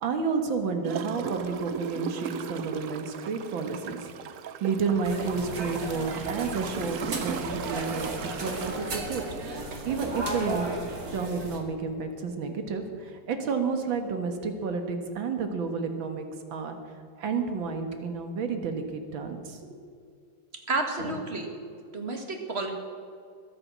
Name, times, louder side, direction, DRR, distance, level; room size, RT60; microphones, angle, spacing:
voice 1, 0.0-4.0 4.6-9.2 9.9-10.7 11.1-16.8 17.2-19.6, right 5 dB, 85° right, 6 dB, 2.2 m, -31 dB
Gurgling / Toilet flush, 0.8-10.2 10.7-10.8, right 8 dB, 65° right, 0.7 m, -38 dB
sound 1, 5.0-11.6, right 2 dB, 50° right, 2.4 m, -34 dB
voice 2, 20.5-21.5 21.9-22.8, right 3 dB, 35° right, 3 dB, 1.9 m, -31 dB
21.5 x 8.7 x 6.2 m, 2.3 s
omnidirectional pair, 2.1 m